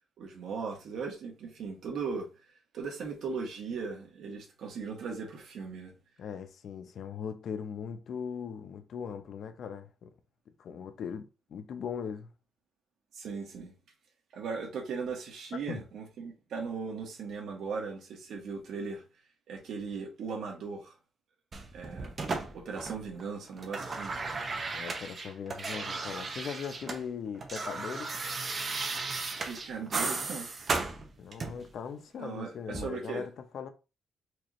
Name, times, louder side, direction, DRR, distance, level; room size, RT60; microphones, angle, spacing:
voice 1, 0.2-2.4 2.7-5.9 13.1-13.7 14.3-19.0 19.5-20.9 21.7-22.1 22.5-24.1 29.4-30.5 32.2-33.3, right 5 dB, 75° right, 1.3 m, -38 dB
voice 2, 6.2-10.1 10.6-12.3 15.5-15.8 24.7-28.2 31.2-33.7, left 7 dB, 60° left, 0.6 m, -39 dB
sound 1, 21.5-23.2 23.5-27.0 27.3-31.7 32.7-32.9, right 3 dB, 35° right, 0.8 m, -35 dB
4.5 x 2.5 x 3.0 m
cardioid pair, 130°, 0 cm